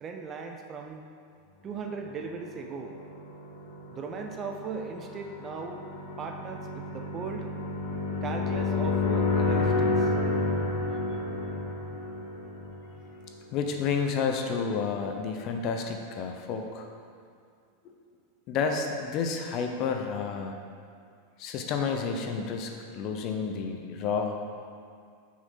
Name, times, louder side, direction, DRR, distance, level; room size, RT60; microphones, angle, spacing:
voice 1, 0.0-1.1 1.6-2.9 3.9-5.8 6.2-7.5 8.2-10.1 11.1-11.2, right 5 dB, 20° right, 3 dB, 0.4 m, -38 dB
sound 1, 2.5-13.3, left 3 dB, 90° left, 1.2 m, -30 dB
voice 2, 13.5-16.9 17.8-17.9 18.5-20.6 21.4-24.4, left 5 dB, 35° left, 4 dB, 0.6 m, -30 dB
5.9 x 4.1 x 5.5 m, 2.2 s
supercardioid pair, 165°, 0 cm